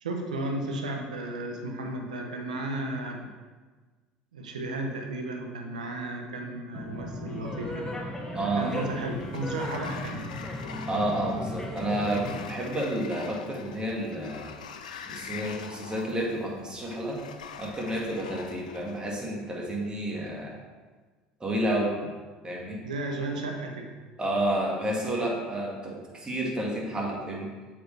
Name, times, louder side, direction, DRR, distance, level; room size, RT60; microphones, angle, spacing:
voice 1, 0.0-3.2 4.3-7.8 8.6-10.3 22.8-23.9, right 2 dB, 90° right, 2 dB, 0.8 m, -34 dB
sound 1, 6.7-12.4, left 1 dB, 10° left, 1.1 m, -36 dB
sound 2, 7.3-13.7, equal, 30° left, 1.5 m, -48 dB
voice 2, 8.3-8.9 10.9-14.5 15.1-17.2 17.6-20.6 21.4-21.9 22.4-22.8 24.2-27.5, right 1 dB, 20° right, -2 dB, 1.9 m, -30 dB
Sliding door, 8.6-19.1, left 6 dB, 90° left, 0.4 m, -44 dB
7.6 x 4.6 x 3.4 m, 1.4 s
hypercardioid pair, 70°, 4 cm